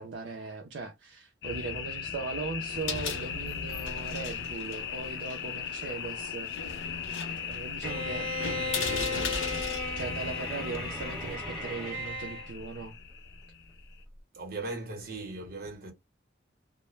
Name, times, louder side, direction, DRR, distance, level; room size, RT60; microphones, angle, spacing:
voice 1, 0.0-6.9 7.3-9.3 10.0-13.0, right 4 dB, 70° right, 0.4 m, -39 dB
sound 1, 1.4-14.0, left 7 dB, 60° left, 0.3 m, -38 dB
sound 2, 2.6-11.4, left 4 dB, 80° left, 0.7 m, -39 dB
Bowed string instrument, 7.8-12.5, left 1 dB, 5° left, 0.9 m, -36 dB
voice 2, 14.3-15.9, right 2 dB, 50° right, 0.9 m, -38 dB
2.1 x 2.0 x 3.0 m
head